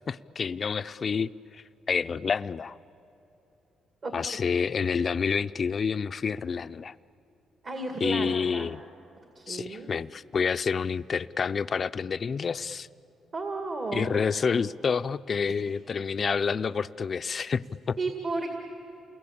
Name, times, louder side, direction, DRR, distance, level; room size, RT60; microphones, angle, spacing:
voice 1, 0.1-2.8 4.1-6.9 8.0-8.8 9.5-12.9 13.9-18.0, left 6 dB, 45° left, 13 dB, 0.5 m, -28 dB
voice 2, 7.6-8.7 9.4-9.9 13.3-14.1 15.4-15.6 18.0-18.6, right 3 dB, 45° right, 3 dB, 2.2 m, -33 dB
29.0 x 21.0 x 8.7 m, 2.9 s
cardioid pair, 90°, 0 cm